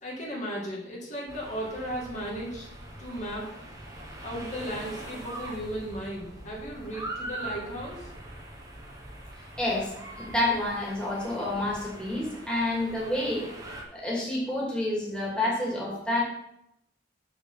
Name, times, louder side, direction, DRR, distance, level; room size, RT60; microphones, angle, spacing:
voice 1, 0.0-2.7 3.0-3.5 4.2-8.1, equal, 40° left, -4 dB, 2.3 m, -35 dB
sound 1, 1.3-13.8, right 1 dB, 20° right, 1.5 m, -42 dB
voice 2, 9.6-9.9 10.2-13.5 13.9-16.2, left 1 dB, 5° left, -5 dB, 2.6 m, -29 dB
7.4 x 7.0 x 5.7 m, 0.81 s
head